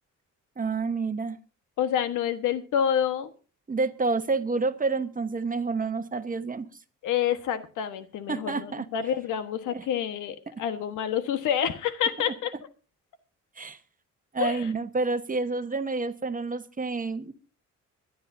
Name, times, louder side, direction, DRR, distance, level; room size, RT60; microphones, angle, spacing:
voice 1, 0.6-1.4 3.7-6.7 8.3-8.9 9.7-9.9 13.6-13.8 14.3-17.3, right 3 dB, 25° right, 10 dB, 1.3 m, -29 dB
voice 2, 1.8-3.3 7.0-12.5 14.4-14.7, left 9 dB, 85° left, 10 dB, 1.4 m, -28 dB
24.5 x 12.0 x 2.7 m, 0.36 s
cardioid pair, 90°, 30 cm